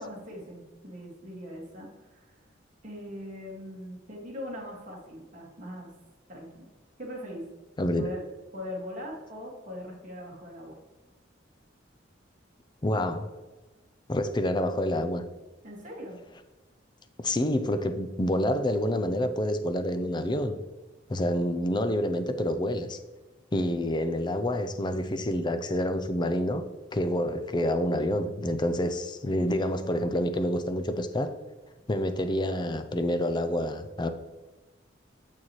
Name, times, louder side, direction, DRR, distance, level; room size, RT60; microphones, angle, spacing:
voice 1, 0.0-2.3 2.8-5.9 6.3-6.7 7.0-7.5 8.0-8.2 8.5-10.8 15.6-16.2, left 1 dB, 45° right, -3 dB, 1.9 m, -40 dB
voice 2, 7.8-8.1 12.8-13.3 14.1-15.3 17.2-20.6 21.1-23.0 23.5-26.6 26.9-31.4 31.9-34.1, left 1 dB, 25° left, 9 dB, 0.5 m, -28 dB
7.3 x 6.5 x 3.1 m, 1.2 s
head